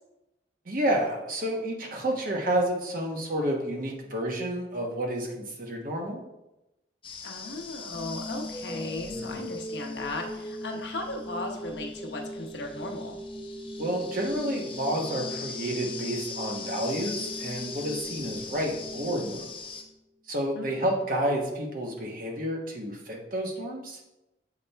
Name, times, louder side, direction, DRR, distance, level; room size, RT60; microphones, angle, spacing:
voice 1, 0.6-6.2 9.1-9.5 13.8-19.5 20.3-24.0, right 1 dB, 50° right, 1 dB, 1.1 m, -30 dB
sound 1, 7.0-19.8, left 5 dB, 30° left, 0.7 m, -42 dB
voice 2, 7.2-13.2 20.6-20.9, left 2 dB, 70° left, 2 dB, 1.0 m, -36 dB
sound 2, 7.9-20.0, left 1 dB, 10° left, 0.3 m, -40 dB
7.5 x 4.2 x 3.4 m, 0.94 s
head